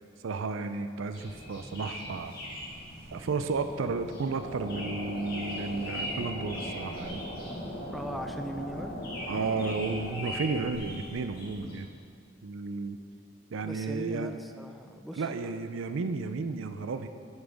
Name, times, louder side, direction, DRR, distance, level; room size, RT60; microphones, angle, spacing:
voice 1, 0.2-2.3 3.1-7.2 9.3-11.9 12.4-13.0 13.5-14.4 15.1-17.1, right 4 dB, 85° right, 9 dB, 0.4 m, -33 dB
sound 1, 1.1-11.8, left 1 dB, 55° left, 2.1 m, -42 dB
sound 2, 4.4-10.6, equal, 70° left, 1.4 m, -39 dB
voice 2, 7.9-9.0 13.6-15.5, equal, ahead, 5 dB, 0.4 m, -39 dB
9.1 x 8.9 x 3.5 m, 2.2 s
head